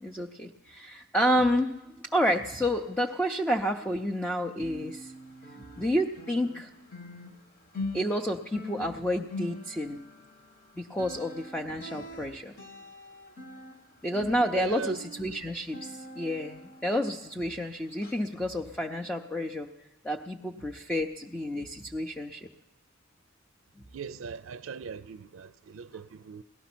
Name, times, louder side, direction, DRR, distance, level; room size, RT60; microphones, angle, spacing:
voice 1, 0.0-1.7 2.1-5.1 5.8-6.7 7.9-10.0 10.8-12.5 14.0-19.7 20.0-22.5, equal, 5° left, 0.5 m, -30 dB
sound 1, 2.1-4.3 4.5-17.6 18.0-18.2 18.7-18.8, left 2 dB, 45° left, 1.5 m, -44 dB
voice 2, 14.5-15.0 23.9-26.4, right 5 dB, 75° right, 0.4 m, -38 dB
18.0 x 12.5 x 6.1 m
head